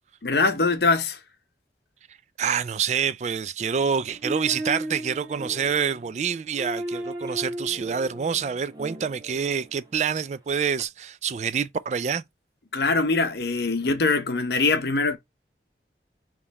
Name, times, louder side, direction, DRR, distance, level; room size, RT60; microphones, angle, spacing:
voice 1, 0.2-1.2 12.7-15.2, left 3 dB, 65° left, 0.8 m, -22 dB
voice 2, 2.4-12.2, right 7 dB, 40° right, 0.3 m, -27 dB
sound 1, 4.0-9.8 10.8-10.9, right 1 dB, 25° right, 0.9 m, -35 dB
3.8 x 3.1 x 4.0 m
head